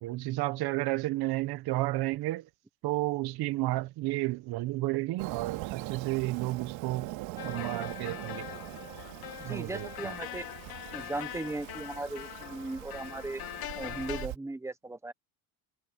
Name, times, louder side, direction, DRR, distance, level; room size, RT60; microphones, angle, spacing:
voice 1, 0.0-2.4 2.8-7.1 7.4-8.5 9.4-10.1, right 18 dB, 50° right, 0.9 m, -32 dB
Fireworks, 5.2-14.4, right 18 dB, 70° right, 2.5 m, -42 dB
sound 1, 7.4-14.3, left 14 dB, 50° left, 1.4 m, -42 dB
voice 2, 9.4-10.5 10.9-13.4 13.7-15.1, right 2 dB, 5° right, 1.0 m, -37 dB
cardioid pair, 160°, 48 cm